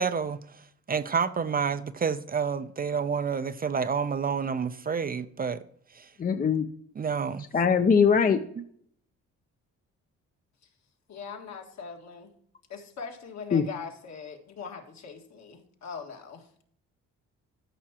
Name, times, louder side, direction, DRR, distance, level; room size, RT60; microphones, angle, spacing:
voice 1, 0.0-5.6 5.9-6.1 7.0-7.5, right 6 dB, 30° right, 0.4 m, -29 dB
voice 2, 6.2-6.7 7.5-8.4 13.5-13.6, left 6 dB, 30° left, 0.5 m, -21 dB
voice 3, 11.1-12.3 12.7-16.6, left 6 dB, 65° left, 1.8 m, -41 dB
13.5 x 5.7 x 2.9 m
cardioid pair, 90°, 30 cm